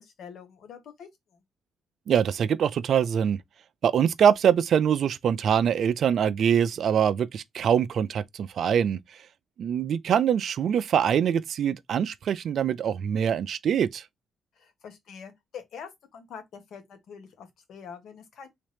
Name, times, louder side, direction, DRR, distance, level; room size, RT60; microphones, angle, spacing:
voice 1, 0.0-1.4 14.5-18.5, left 7 dB, 70° left, 1.3 m, -45 dB
voice 2, 2.1-3.4 3.8-9.0 9.6-14.0, right 8 dB, 65° right, 0.3 m, -24 dB
3.5 x 2.8 x 3.4 m
cardioid pair, 90°, 0 cm